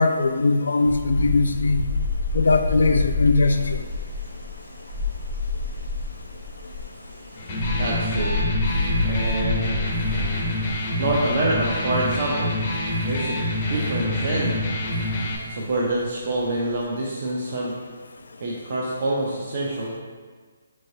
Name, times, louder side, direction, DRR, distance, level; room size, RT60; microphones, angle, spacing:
voice 1, 0.0-1.8 2.3-3.8, left 3 dB, 85° left, 7 dB, 0.3 m, -20 dB
sound 1, 0.8-16.8, left 3 dB, 85° right, 0.7 m, -29 dB
Electric guitar, 7.4-15.4, left 1 dB, 30° left, 0.6 m, -26 dB
voice 2, 7.8-8.4 9.0-9.8 11.0-12.6 13.0-13.4 13.7-14.5 15.5-17.7 18.4-19.9, right 2 dB, 50° right, -4 dB, 0.5 m, -26 dB
4.4 x 3.1 x 2.6 m, 1.5 s
hypercardioid pair, 165°, 0 cm